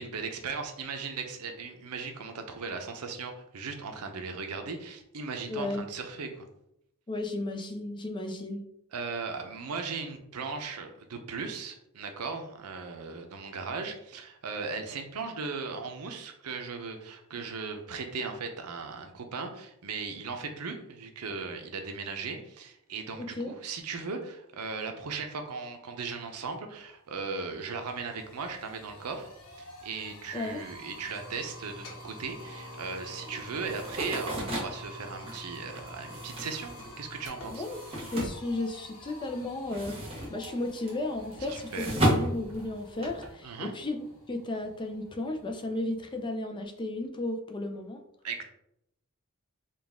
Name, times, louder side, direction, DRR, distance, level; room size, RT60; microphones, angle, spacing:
voice 1, 0.0-6.4 8.9-37.6 41.5-41.9 43.4-43.7 48.2-48.4, right 4 dB, 80° right, 5 dB, 0.6 m, -37 dB
voice 2, 5.5-5.8 7.1-8.6 23.2-23.5 30.3-30.6 37.5-44.0 44.3-48.0, left 2 dB, 20° left, 5 dB, 0.4 m, -34 dB
sound 1, 26.8-26.9 27.2-46.2, equal, 80° left, 1.2 m, -48 dB
sound 2, 33.7-39.1 39.4-43.3, equal, 25° right, 1.1 m, -33 dB
3.9 x 2.3 x 3.5 m, 0.77 s
head